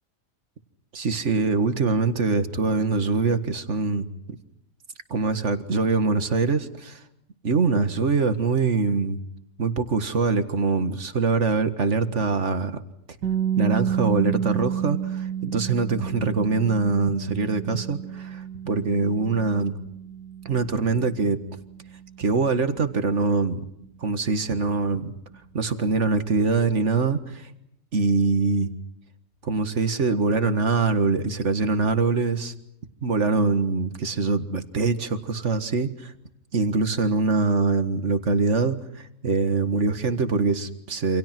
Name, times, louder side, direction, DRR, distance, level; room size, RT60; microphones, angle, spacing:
voice 1, 0.9-4.1 5.1-7.0 7.4-9.2 9.6-12.8 13.6-19.8 20.5-21.4 22.2-23.6 24.0-25.1 25.5-27.5 27.9-28.7 29.4-32.5 33.0-36.1 36.5-41.2, right 4 dB, 45° right, 10 dB, 2.0 m, -23 dB
sound 1, 13.2-25.1, right 9 dB, 90° right, 2.9 m, -31 dB
28.5 x 27.0 x 6.1 m, 0.77 s
omnidirectional pair, 1.7 m